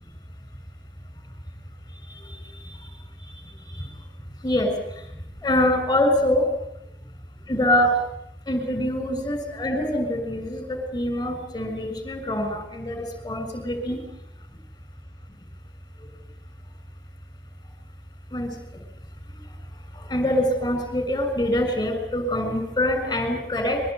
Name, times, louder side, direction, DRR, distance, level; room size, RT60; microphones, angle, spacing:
voice 1, 5.4-6.5 7.5-7.9 8.5-14.0 18.3-18.5 20.1-23.8, left 1 dB, 20° left, 7 dB, 6.7 m, -24 dB
24.0 x 21.5 x 9.4 m, 0.82 s
head